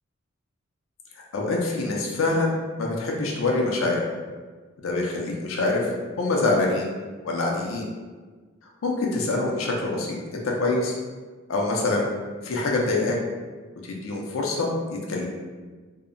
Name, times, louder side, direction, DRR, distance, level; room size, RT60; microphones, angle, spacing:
voice 1, 1.3-4.1 4.8-5.8 6.2-6.9 7.2-7.9 8.8-11.0 11.5-12.1 12.4-13.2 13.9-15.3, left 2 dB, 75° left, -1 dB, 0.5 m, -25 dB
2.7 x 2.0 x 2.5 m, 1.4 s
head